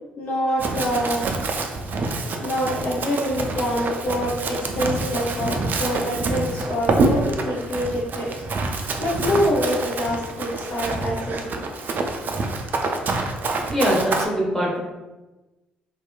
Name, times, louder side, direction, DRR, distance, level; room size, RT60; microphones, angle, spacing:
voice 1, 0.2-1.2 2.4-8.3 9.0-11.7, equal, 40° left, -5 dB, 0.6 m, -25 dB
Run, 0.6-14.3, right 3 dB, 45° right, 0.4 m, -26 dB
voice 2, 13.7-14.8, equal, 10° left, -5 dB, 1.1 m, -22 dB
2.8 x 2.3 x 2.3 m, 1.1 s
figure-of-eight pair, 45°, 4 cm